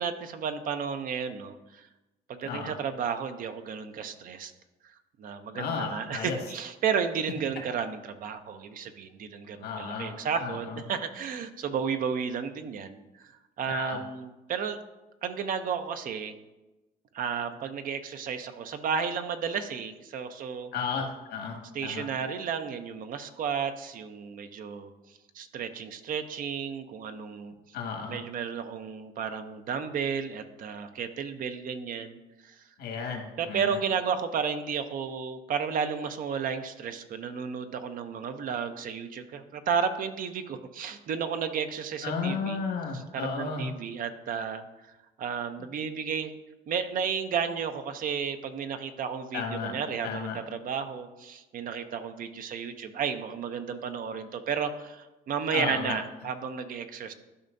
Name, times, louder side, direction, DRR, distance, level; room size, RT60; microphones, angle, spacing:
voice 1, 0.0-1.9 2.3-4.5 5.2-13.3 13.6-14.8 15.2-16.3 17.1-20.7 21.7-24.9 25.3-27.5 28.1-32.2 32.4-32.6 33.4-42.6 42.9-44.6 45.2-46.4 46.7-57.1, right 6 dB, 55° right, 8 dB, 0.7 m, -33 dB
voice 2, 2.4-2.8 5.5-6.4 9.6-10.8 13.7-14.0 20.7-22.1 27.7-28.2 32.8-33.8 42.0-43.7 45.6-45.7 49.3-49.8 50.0-50.4 55.5-56.0, left 5 dB, 85° left, 1 dB, 1.8 m, -34 dB
12.5 x 5.5 x 2.6 m, 1.0 s
cardioid pair, 110°, 17 cm